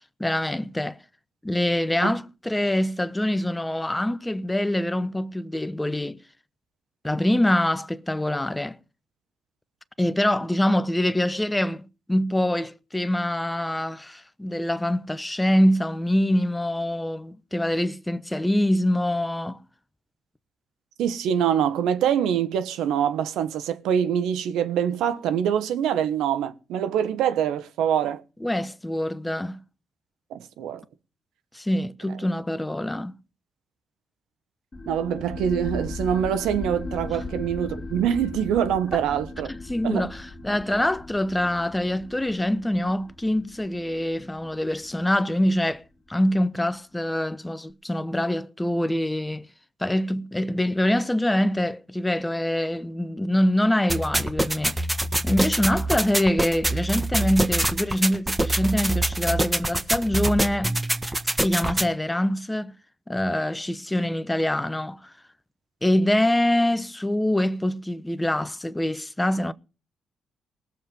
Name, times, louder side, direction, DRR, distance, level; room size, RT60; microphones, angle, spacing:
voice 1, 0.2-1.0 1.4-6.2 7.0-8.8 10.0-19.6 28.4-29.6 31.5-33.1 37.1-37.2 38.9-39.0 39.5-45.8 46.1-49.5 49.8-54.8 55.2-60.8 61.4-62.7 63.1-65.1 65.8-69.5, left 1 dB, 10° left, 0.9 m, -24 dB
voice 2, 21.0-28.2 30.3-30.8 34.9-39.5 39.8-40.1, right 9 dB, 85° right, 1.2 m, -24 dB
sound 1, 34.7-45.8, left 2 dB, 30° left, 2.2 m, -38 dB
sound 2, 53.9-61.9, right 1 dB, 15° right, 1.6 m, -25 dB
19.5 x 7.3 x 5.4 m
supercardioid pair, 65°, 0 cm